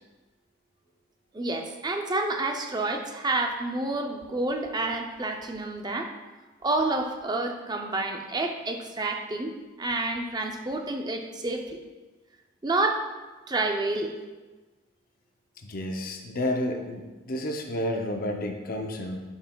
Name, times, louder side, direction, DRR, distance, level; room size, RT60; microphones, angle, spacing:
voice 1, 1.3-6.1 6.6-9.5 9.8-11.8 12.6-13.0 13.5-14.1, right 2 dB, 20° right, 4 dB, 0.5 m, -29 dB
voice 2, 15.6-19.2, left 1 dB, 45° left, 3 dB, 0.6 m, -31 dB
8.7 x 5.6 x 2.3 m, 1.2 s
head